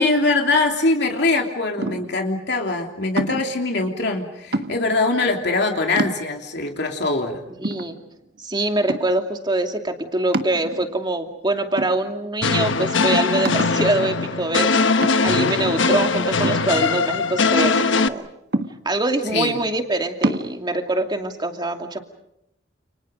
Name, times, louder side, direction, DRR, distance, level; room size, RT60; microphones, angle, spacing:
voice 1, 0.0-7.4 19.3-19.5, left 3 dB, 65° left, 2 dB, 3.1 m, -22 dB
sound 1, 1.8-2.2 3.2-3.6 4.5-5.0 5.5-5.6 6.0-6.6 7.1-7.2 7.6-8.4 8.9-9.3 10.3-11.1 11.8-12.4 12.7-12.8 13.4-13.9 15.0-15.5 16.4-17.3 18.5-19.1 20.2-20.5, right 2 dB, 60° right, 1.5 m, -27 dB
voice 2, 7.6-8.0 8.4-18.2 18.8-22.0, right 2 dB, 25° right, 4 dB, 2.6 m, -24 dB
sound 2, 12.4-18.1, left 4 dB, 80° left, 1.1 m, -20 dB
30.0 x 29.5 x 5.2 m, 0.80 s
head